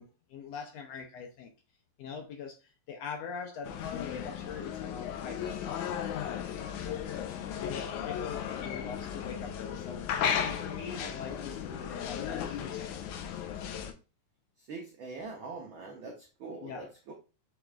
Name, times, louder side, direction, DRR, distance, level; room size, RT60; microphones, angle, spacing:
voice 1, 0.0-1.5 2.0-5.7 6.8-7.1 7.6-13.1 16.6-16.9, left 6 dB, 75° left, 1.6 m, -43 dB
sound 1, 3.6-13.9, left 8 dB, 90° left, 2.1 m, -35 dB
voice 2, 14.7-17.1, right 3 dB, 85° right, 1.1 m, -43 dB
6.2 x 3.4 x 2.4 m
omnidirectional pair, 3.4 m